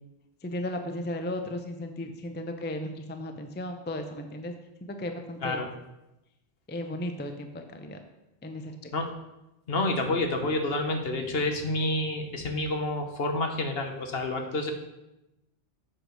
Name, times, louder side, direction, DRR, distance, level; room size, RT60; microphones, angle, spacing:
voice 1, 0.4-4.5 4.8-5.6 6.7-8.0 8.4-8.9, left 1 dB, 15° left, 6 dB, 0.5 m, -35 dB
voice 2, 9.7-14.7, left 2 dB, 60° left, 4 dB, 1.2 m, -29 dB
7.6 x 4.9 x 6.3 m, 0.95 s
omnidirectional pair, 1.2 m